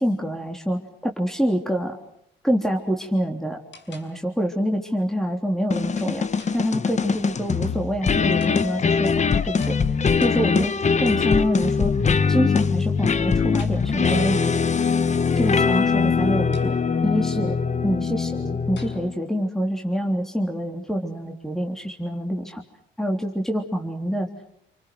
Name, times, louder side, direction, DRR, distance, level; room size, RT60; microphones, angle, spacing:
voice 1, 0.0-2.0 2.4-3.6 3.9-6.3 6.5-9.8 10.2-11.9 12.3-14.5 15.4-16.7 17.0-17.6 17.8-22.6 23.0-24.3, equal, ahead, 2 dB, 3.5 m, -26 dB
sound 1, 2.8-3.1 3.7-4.6 6.4-7.2 8.4-9.0 9.6-11.0 13.6-14.3 16.5-17.1 18.8-19.3, left 4 dB, 65° left, 6.2 m, -50 dB
sound 2, 5.7-19.2, left 5 dB, 35° left, 1.2 m, -22 dB
29.0 x 26.0 x 6.2 m, 0.72 s
cardioid pair, 90°, 20 cm